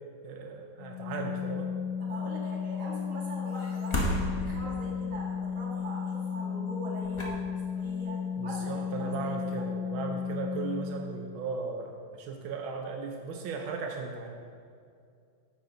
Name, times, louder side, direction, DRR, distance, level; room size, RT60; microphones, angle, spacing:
voice 1, 0.2-1.7 8.4-14.3, right 4 dB, 85° right, 2 dB, 1.5 m, -37 dB
Organ, 0.8-11.4, left 7 dB, 75° left, 1.4 m, -34 dB
voice 2, 2.0-9.7, right 1 dB, 40° right, -6 dB, 2.4 m, -42 dB
sound 1, 3.5-5.1 6.7-6.8 7.0-8.0 8.4-8.6, left 1 dB, 25° left, 0.7 m, -33 dB
9.8 x 6.7 x 3.9 m, 2.3 s
omnidirectional pair, 2.1 m